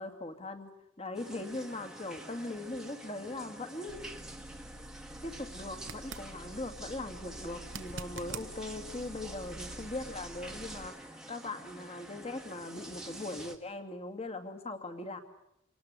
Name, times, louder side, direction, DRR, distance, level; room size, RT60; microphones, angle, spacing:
voice 1, 0.0-4.0 5.2-15.2, left 2 dB, 30° left, 7 dB, 2.2 m, -40 dB
sound 1, 1.1-13.6, right 1 dB, 5° right, 1.6 m, -47 dB
sound 2, 3.9-10.9, right 1 dB, 75° right, 1.9 m, -50 dB
sound 3, 5.8-6.3 7.6-8.5 11.5-11.6, right 6 dB, 60° right, 1.2 m, -43 dB
27.0 x 19.0 x 9.8 m, 0.79 s
head